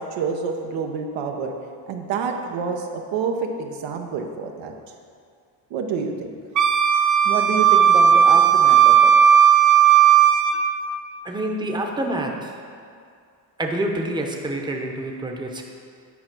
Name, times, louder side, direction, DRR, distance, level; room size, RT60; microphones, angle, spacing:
voice 1, 0.0-1.5 1.9-4.7 5.7-6.4 7.2-9.1, right 5 dB, 85° right, 3 dB, 1.0 m, -28 dB
Wind instrument woodwind instrument, 6.6-10.6, right 8 dB, 40° right, 0.7 m, -15 dB
voice 2, 11.2-12.5 13.6-15.6, right 1 dB, 10° right, 1 dB, 0.8 m, -27 dB
9.3 x 4.4 x 6.0 m, 2.2 s
cardioid pair, 110°, 44 cm